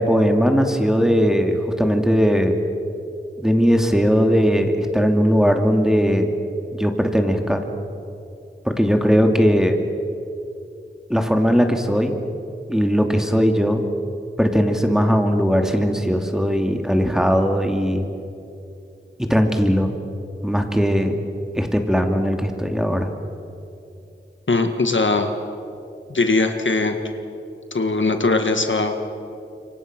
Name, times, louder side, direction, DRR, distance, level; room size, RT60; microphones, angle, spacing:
voice 1, 0.0-2.6 3.4-6.3 6.7-7.6 8.6-9.8 11.1-12.1 12.7-13.8 14.4-18.1 19.2-19.9 20.4-21.2 21.5-23.1, equal, ahead, 4 dB, 2.6 m, -19 dB
voice 2, 24.5-25.3 26.1-27.0 27.7-28.9, left 3 dB, 70° left, 5 dB, 1.9 m, -20 dB
27.0 x 23.5 x 6.2 m, 2.7 s
wide cardioid pair, 45°, 20 cm